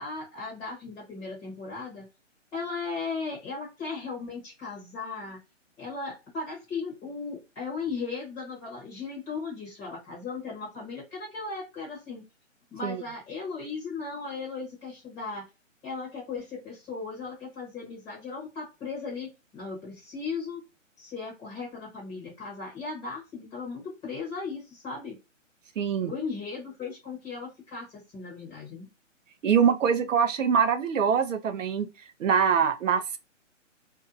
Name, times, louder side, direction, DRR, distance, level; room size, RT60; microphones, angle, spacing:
voice 1, 0.0-2.1 2.5-5.4 5.8-12.2 12.7-15.4 15.8-20.6 21.0-25.2 26.0-27.9 28.1-28.9, left 4 dB, 10° left, 0.9 m, -37 dB
voice 2, 25.8-26.1 29.4-31.9 32.2-33.2, right 7 dB, 75° right, 0.6 m, -24 dB
2.6 x 2.3 x 2.5 m
hypercardioid pair, 150°, 38 cm